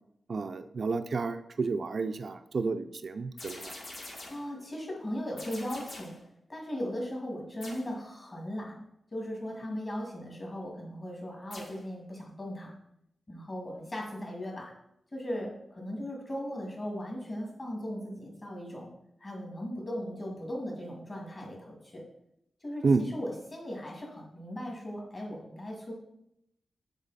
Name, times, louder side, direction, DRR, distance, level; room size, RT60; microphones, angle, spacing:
voice 1, 0.3-3.8 22.8-23.0, right 4 dB, 50° right, 8 dB, 0.3 m, -30 dB
sound 1, 3.4-4.5 5.4-6.2 7.6-8.0 11.5-11.9, left 1 dB, 60° left, 2.0 m, -45 dB
voice 2, 4.3-6.2 6.5-8.8 9.1-12.8 13.3-14.7 15.1-18.9 19.2-22.0 22.6-25.9, equal, 30° left, -1 dB, 1.9 m, -38 dB
7.2 x 3.8 x 4.0 m, 0.77 s
wide cardioid pair, 135°, 0 cm